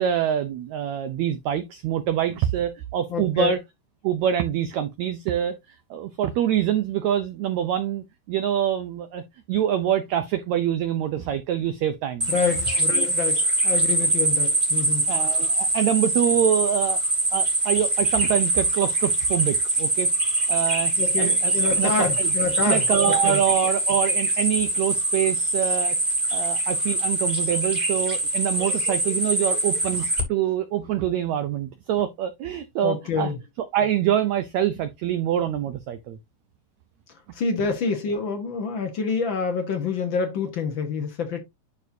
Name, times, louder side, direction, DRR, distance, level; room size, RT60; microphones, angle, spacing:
voice 1, 0.0-3.6 4.0-5.6 5.9-9.2 9.5-12.3 15.1-17.0 17.3-20.1 20.5-20.9 21.2-22.3 22.6-26.0 26.3-33.3 33.6-36.2, right 10 dB, 80° right, 1.6 m, -25 dB
voice 2, 3.1-3.5 12.3-15.1 21.0-23.4 32.8-33.4 37.3-41.4, left 5 dB, 70° left, 1.1 m, -27 dB
sound 1, 12.2-30.2, right 2 dB, 15° right, 2.1 m, -23 dB
11.0 x 4.3 x 2.7 m
omnidirectional pair, 4.0 m